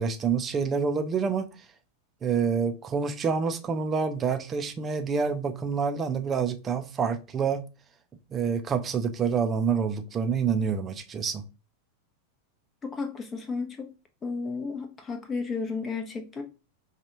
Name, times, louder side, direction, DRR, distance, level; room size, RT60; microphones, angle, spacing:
voice 1, 0.0-1.5 2.2-7.6 8.3-11.4, right 6 dB, 25° right, 0.6 m, -27 dB
voice 2, 12.8-13.9 14.2-16.4, left 4 dB, 20° left, 0.9 m, -33 dB
5.2 x 2.4 x 3.0 m
figure-of-eight pair, 90°, 0 cm